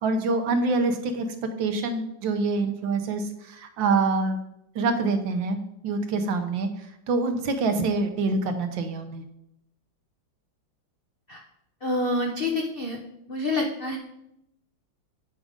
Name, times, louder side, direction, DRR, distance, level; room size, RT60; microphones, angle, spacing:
voice 1, 0.0-1.2 1.6-4.4 4.7-5.6 5.8-9.2, right 3 dB, 75° right, 7 dB, 1.6 m, -26 dB
voice 2, 11.8-13.0 13.3-14.0, left 2 dB, 70° left, 2 dB, 0.5 m, -27 dB
8.5 x 5.0 x 5.0 m, 0.82 s
omnidirectional pair, 2.1 m